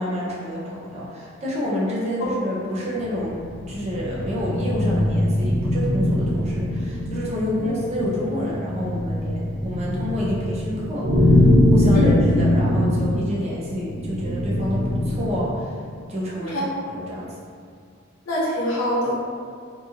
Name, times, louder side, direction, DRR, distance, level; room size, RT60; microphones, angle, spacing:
voice 1, 0.0-3.4 3.7-15.7 16.1-17.3, equal, 30° right, -6 dB, 0.5 m, -29 dB
sound 1, 3.0-15.6, left 1 dB, 90° right, 0.8 m, -22 dB
voice 2, 16.3-16.6 18.3-19.2, left 1 dB, 75° left, -8 dB, 0.9 m, -24 dB
2.8 x 2.4 x 2.7 m, 2.2 s
head